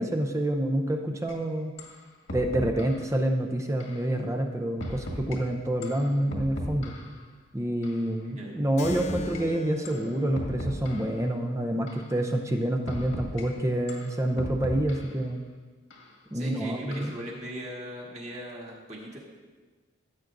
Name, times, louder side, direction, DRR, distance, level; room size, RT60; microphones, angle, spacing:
voice 1, 0.0-1.7 2.3-6.9 7.5-15.4 16.3-17.1, right 1 dB, 15° right, 4 dB, 0.5 m, -28 dB
sound 1, 1.3-1.4 1.8-2.0 2.3-3.0 3.8-4.0 4.8-5.4 5.8-7.2 7.8-8.0 8.8-9.4 9.9-10.1 10.4-11.2 11.9-12.1 12.9-13.4 13.9-15.2 15.9-16.1 16.9-17.3, equal, 80° left, 1.6 m, -37 dB
voice 2, 8.2-8.6 16.3-19.2, right 1 dB, 35° right, -3 dB, 1.7 m, -39 dB
Keyboard (musical), 8.8-13.9, left 2 dB, 35° left, 0.3 m, -43 dB
15.0 x 8.2 x 2.6 m, 1.3 s
head